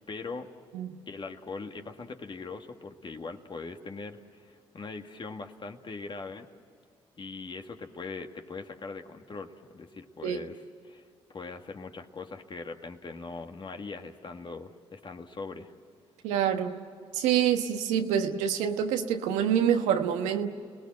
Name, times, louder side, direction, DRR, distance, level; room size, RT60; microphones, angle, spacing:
voice 1, 0.1-0.5 1.1-6.5 7.2-11.1 11.3-15.7, left 4 dB, 45° left, 5 dB, 2.0 m, -41 dB
voice 2, 16.2-16.8 17.1-20.5, right 9 dB, 90° right, 5 dB, 1.3 m, -26 dB
30.0 x 19.5 x 7.8 m, 2.2 s
supercardioid pair, 55°, 12 cm